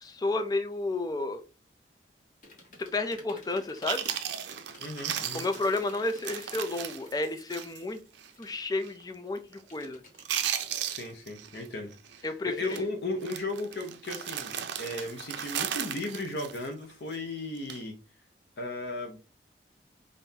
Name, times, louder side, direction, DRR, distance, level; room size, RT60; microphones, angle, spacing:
voice 1, 0.0-1.4 2.8-4.1 5.3-8.0 8.4-10.0 12.2-12.8, left 2 dB, 20° left, 8 dB, 0.4 m, -31 dB
sound 1, 2.4-7.4 7.7-9.3 9.7-10.9, left 2 dB, 45° left, 1.2 m, -53 dB
Chewing mastication, 3.5-3.6 3.9-7.9 8.2-8.3 8.8-9.1 9.4-9.9 10.1-11.7 11.9-12.2 12.6-12.8 13.2-17.2 17.6-17.8, right 9 dB, 85° right, 0.5 m, -36 dB
voice 2, 4.8-5.5 10.9-18.0 18.6-19.2, left 2 dB, 70° left, 2 dB, 0.8 m, -36 dB
5.3 x 2.6 x 2.8 m, 0.32 s
head